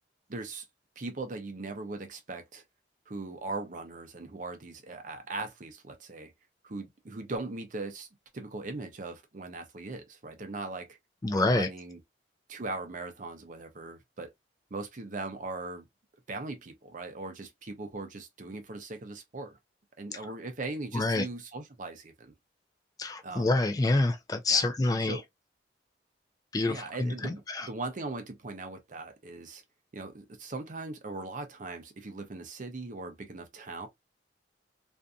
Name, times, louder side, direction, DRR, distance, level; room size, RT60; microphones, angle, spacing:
voice 1, 0.3-0.7 1.0-2.6 3.1-6.3 6.6-8.1 8.3-10.9 11.3-12.0 12.5-14.3 14.7-15.9 16.3-19.6 20.0-22.3 23.2-23.5 24.5-24.7 25.0-25.2 26.7-29.6 29.9-33.9, right 3 dB, 45° right, 0.6 m, -39 dB
voice 2, 11.2-11.7 20.1-20.2 20.9-21.2 23.0-25.2 26.5-27.7, left 2 dB, 20° left, 0.3 m, -27 dB
2.5 x 2.5 x 2.2 m
head